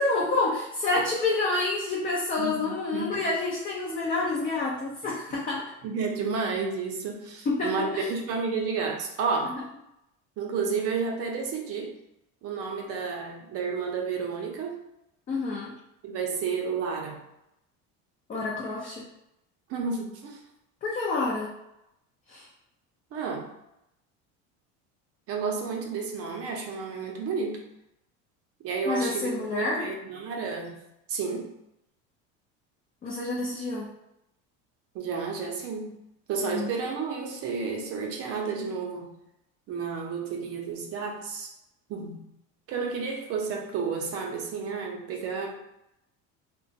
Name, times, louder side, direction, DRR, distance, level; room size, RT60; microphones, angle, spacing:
voice 1, 0.0-5.7 7.5-8.1 15.3-15.7 18.3-19.1 20.8-21.5 22.3-22.5 28.9-29.9 33.0-33.9 36.4-36.7, left 3 dB, 25° left, -5 dB, 0.4 m, -28 dB
voice 2, 2.4-3.2 5.0-5.1 5.8-9.6 10.4-11.9 12.4-14.8 16.0-17.2 19.7-20.4 23.1-23.5 25.3-27.6 28.6-30.8 31.1-31.5 34.9-36.0 36.3-39.1 39.7-41.5 41.9-42.3 42.7-45.5, right 5 dB, 45° right, 1 dB, 0.6 m, -31 dB
2.9 x 2.2 x 2.7 m, 0.85 s
cardioid pair, 135°, 33 cm